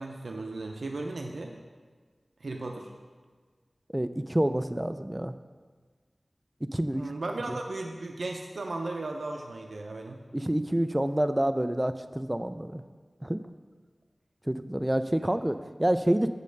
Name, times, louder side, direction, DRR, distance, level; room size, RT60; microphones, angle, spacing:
voice 1, 0.0-1.5 2.4-2.9 6.9-10.2, right 2 dB, 85° right, 2 dB, 0.5 m, -36 dB
voice 2, 3.9-5.3 6.6-7.0 10.3-12.8 13.2-13.4 14.5-16.3, right 1 dB, 15° right, 10 dB, 0.3 m, -28 dB
6.6 x 5.3 x 6.4 m, 1.5 s
wide cardioid pair, 65°, 0 cm